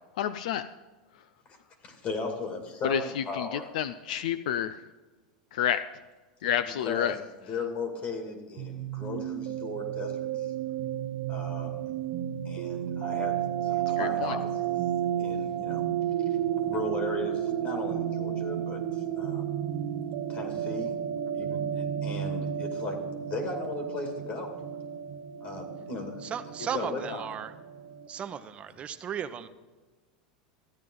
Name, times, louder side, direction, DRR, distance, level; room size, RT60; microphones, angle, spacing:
voice 1, 0.2-0.6 2.8-3.5 3.7-4.8 5.5-5.8 6.4-7.1 14.0-14.4, left 10 dB, 75° left, 12 dB, 0.4 m, -29 dB
voice 2, 1.8-3.7 6.7-10.5 11.3-12.0 12.4-14.8 15.2-15.8 16.3-16.4 16.7-19.4 20.3-20.9 21.3-24.5 25.4-27.2, left 3 dB, 40° left, 4 dB, 2.3 m, -37 dB
sound 1, 8.6-28.1, right 10 dB, 65° right, 1.0 m, -32 dB
voice 3, 26.2-27.5 28.1-29.5, right 8 dB, 30° right, 10 dB, 0.7 m, -35 dB
14.0 x 9.3 x 3.8 m, 1.3 s
supercardioid pair, 120°, 4 cm